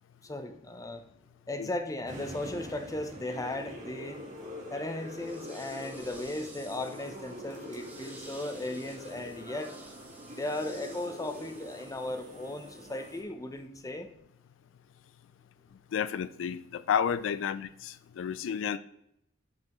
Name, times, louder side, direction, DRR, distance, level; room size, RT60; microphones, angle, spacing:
voice 1, 0.2-1.0 1.5-4.2 4.7-9.7 10.3-14.1, left 2 dB, 20° left, 7 dB, 0.6 m, -36 dB
sound 1, 2.1-13.2, equal, 40° right, 1.5 m, -45 dB
sound 2, 5.0-12.3, right 2 dB, 10° right, 1.1 m, -53 dB
voice 2, 15.9-18.8, left 7 dB, 85° left, 14 dB, 0.3 m, -31 dB
9.3 x 5.3 x 3.0 m, 0.77 s
head